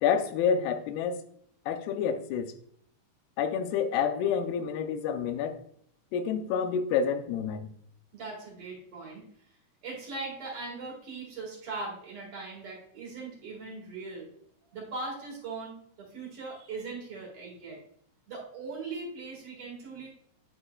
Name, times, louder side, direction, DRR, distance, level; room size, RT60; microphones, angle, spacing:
voice 1, 0.0-1.2 1.7-2.5 3.4-5.6 6.1-7.7, left 7 dB, 90° left, 8 dB, 2.7 m, -28 dB
voice 2, 8.1-9.3 9.8-14.3 14.7-17.8 18.3-20.1, right 3 dB, 45° right, -2 dB, 2.2 m, -40 dB
9.9 x 4.5 x 2.3 m, 0.65 s
omnidirectional pair, 4.5 m